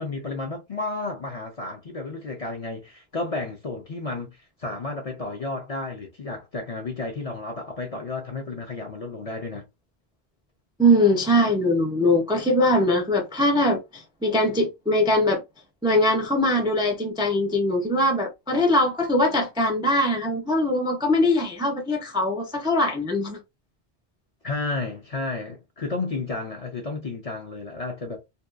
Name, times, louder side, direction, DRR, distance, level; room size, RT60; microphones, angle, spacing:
voice 1, 0.0-9.7 24.4-28.2, left 3 dB, 45° left, 0.5 m, -32 dB
voice 2, 10.8-15.4 15.8-23.4, left 1 dB, 5° right, 0.3 m, -22 dB
2.7 x 2.2 x 2.4 m
omnidirectional pair, 1.1 m